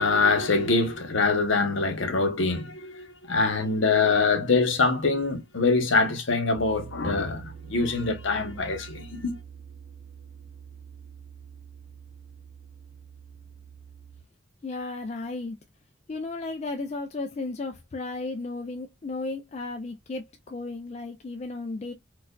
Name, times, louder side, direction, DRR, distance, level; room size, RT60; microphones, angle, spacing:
voice 1, 0.0-9.4, left 3 dB, 70° left, 0.8 m, -24 dB
sound 1, 6.5-14.2, right 7 dB, 70° right, 0.7 m, -46 dB
voice 2, 14.6-15.6 16.1-21.9, left 3 dB, 35° left, 0.3 m, -34 dB
4.3 x 2.3 x 2.2 m
head